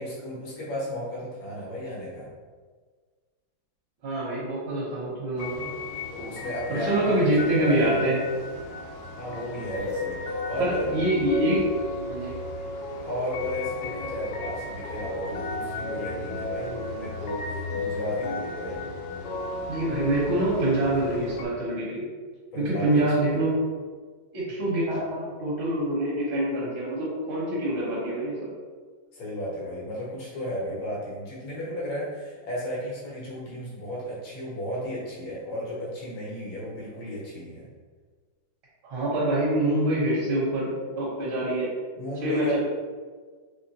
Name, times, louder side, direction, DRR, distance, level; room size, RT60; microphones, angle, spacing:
voice 1, 0.0-2.3 6.1-8.0 9.2-10.9 13.0-18.8 22.5-23.4 29.1-37.7 42.0-42.6, equal, 85° left, -6 dB, 2.1 m, -34 dB
voice 2, 4.0-5.7 6.7-8.2 10.6-11.6 12.1-12.4 19.7-22.0 22.6-23.5 24.3-28.5 38.8-41.7 42.2-42.6, right 1 dB, 80° right, -7 dB, 2.0 m, -25 dB
sound 1, 5.4-21.4, left 2 dB, 65° left, 1.0 m, -34 dB
4.9 x 3.0 x 2.9 m, 1.5 s
omnidirectional pair, 2.1 m